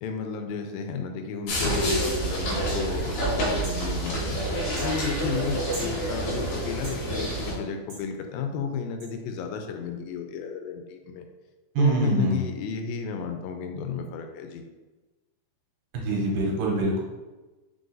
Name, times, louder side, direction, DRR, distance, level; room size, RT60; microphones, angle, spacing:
voice 1, 0.0-4.4 4.8-11.3 11.8-14.6, left 5 dB, 85° left, 5 dB, 2.2 m, -33 dB
sound 1, 1.5-7.6, right 1 dB, 65° left, 2.2 m, -28 dB
sound 2, 2.7-2.8 3.6-3.8 4.8-4.9 5.7-5.9 6.8-7.0 7.9-8.1 9.0-9.1, right 2 dB, 55° right, 1.3 m, -40 dB
voice 2, 11.8-12.4 15.9-17.0, right 2 dB, 75° right, -3 dB, 2.4 m, -24 dB
5.3 x 2.5 x 3.8 m, 1.2 s
omnidirectional pair, 4.1 m